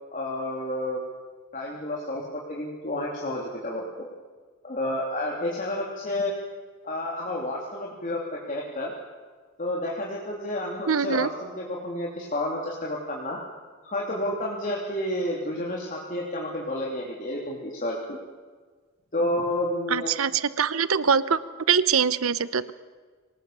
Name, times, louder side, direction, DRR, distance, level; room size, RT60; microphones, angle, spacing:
voice 1, 0.1-1.0 1.5-4.1 4.6-6.3 6.8-8.9 9.6-13.4 13.8-18.2 19.1-20.1, left 1 dB, 40° left, -3 dB, 3.2 m, -30 dB
voice 2, 10.9-11.3 19.9-21.4 21.7-22.7, right 6 dB, 90° right, 16 dB, 0.9 m, -23 dB
25.5 x 19.0 x 7.0 m, 1.4 s
head